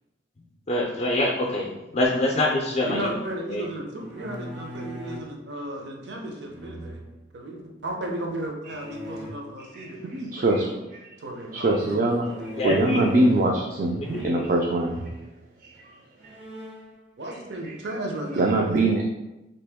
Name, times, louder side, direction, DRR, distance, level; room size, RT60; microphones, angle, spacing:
voice 1, 0.7-3.1 3.5-3.7 12.5-13.1 14.0-14.5, left 1 dB, 35° left, -1 dB, 0.4 m, -25 dB
voice 2, 2.9-7.0 7.3-10.7 11.2-12.9 17.2-18.8, right 1 dB, 70° right, 1 dB, 0.7 m, -35 dB
sound 1, 4.0-5.3 6.5-7.2 8.7-9.3 12.2-13.6 14.0-14.5 14.7-15.1 15.7-15.8 16.2-16.9, equal, 85° right, 1.4 m, -39 dB
voice 3, 9.7-10.7 10.9-11.1 11.5-15.1 17.6-17.7 18.4-19.0, right 2 dB, 45° right, 0 dB, 0.3 m, -23 dB
3.4 x 2.9 x 3.4 m, 1.0 s
head